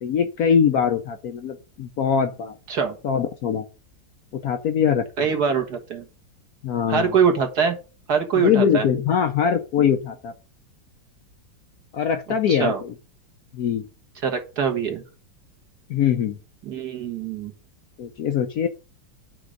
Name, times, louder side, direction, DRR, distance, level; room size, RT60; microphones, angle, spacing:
voice 1, 0.0-2.5 3.0-3.7 4.4-5.3 6.6-7.2 8.3-10.3 11.9-12.9 13.5-13.9 15.9-16.4 18.0-18.7, left 7 dB, 65° left, 7 dB, 1.0 m, -22 dB
voice 2, 5.2-6.0 6.9-7.8 8.1-8.8 12.5-12.8 14.2-15.0 16.6-17.5, right 6 dB, 55° right, 4 dB, 1.9 m, -23 dB
8.8 x 3.9 x 6.5 m, 0.34 s
omnidirectional pair, 2.1 m